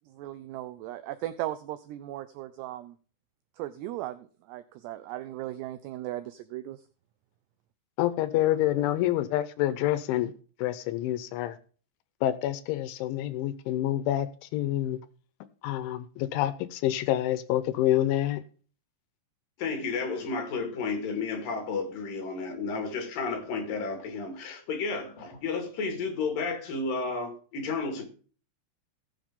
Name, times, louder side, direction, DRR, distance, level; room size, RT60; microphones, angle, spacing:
voice 1, 0.1-3.0 3.6-6.8, right 14 dB, 90° right, 2.4 m, -37 dB
voice 2, 8.0-10.3 10.6-11.6 12.2-15.0 15.6-18.4, left 13 dB, 80° left, 3.1 m, -27 dB
voice 3, 19.6-28.1, left 4 dB, 55° left, 3.3 m, -32 dB
18.5 x 7.3 x 3.7 m
omnidirectional pair, 5.6 m